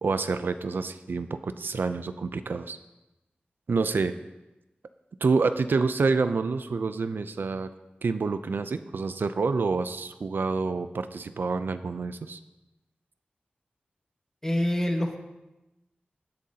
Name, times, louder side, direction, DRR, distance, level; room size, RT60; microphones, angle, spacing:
voice 1, 0.0-2.8 3.7-4.1 5.2-7.7 8.0-12.4, right 4 dB, 75° right, 10 dB, 0.5 m, -27 dB
voice 2, 14.4-15.2, left 1 dB, 15° left, 2 dB, 1.6 m, -26 dB
18.5 x 10.5 x 2.8 m, 0.99 s
wide cardioid pair, 95°, 3 cm